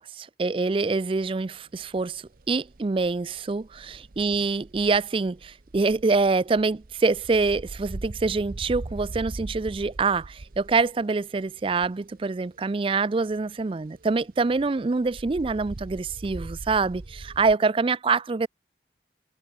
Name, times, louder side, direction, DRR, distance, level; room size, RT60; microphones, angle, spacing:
voice 1, 0.0-18.5, right 4 dB, 30° right, 0.4 m, -25 dB
sound 1, 0.7-1.5 1.7-12.6 12.8-17.5, right 2 dB, 50° right, 0.8 m, -41 dB
head